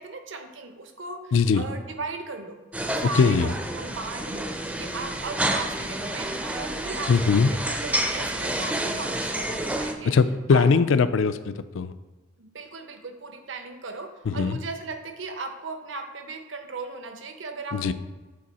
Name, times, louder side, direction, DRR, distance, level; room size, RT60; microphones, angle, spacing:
voice 1, 0.0-2.6 3.0-3.5 3.7-4.5 4.8-10.2 10.5-10.8 12.4-17.9, right 3 dB, 65° right, 6 dB, 0.8 m, -37 dB
voice 2, 1.3-1.6 3.1-3.5 7.1-7.5 10.0-11.9 14.3-14.6 17.7-17.9, left 5 dB, 70° left, 13 dB, 0.4 m, -20 dB
sound 1, 2.7-9.9, right 1 dB, 5° right, 0.4 m, -29 dB
7.6 x 4.5 x 4.2 m, 1.2 s
head